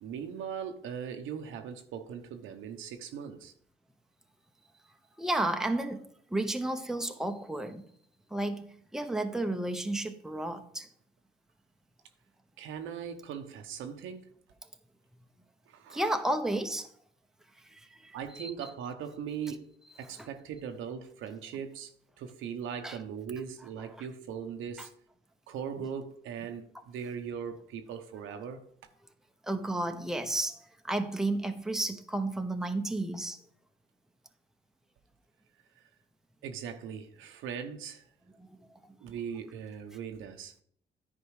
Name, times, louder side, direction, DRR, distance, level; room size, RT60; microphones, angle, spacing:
voice 1, 0.0-3.5 12.6-14.3 15.7-16.2 18.1-19.7 20.0-24.9 25.5-28.7 35.8-35.9 36.4-38.0 39.0-40.5, right 7 dB, 90° right, 0.9 m, -39 dB
voice 2, 5.2-7.9 8.3-10.9 15.9-16.9 17.6-18.7 20.2-20.3 22.8-23.0 23.9-24.1 24.8-24.9 29.4-33.4 38.4-38.7, right 1 dB, ahead, 0.8 m, -33 dB
10.0 x 4.6 x 4.8 m
cardioid pair, 90°, 20 cm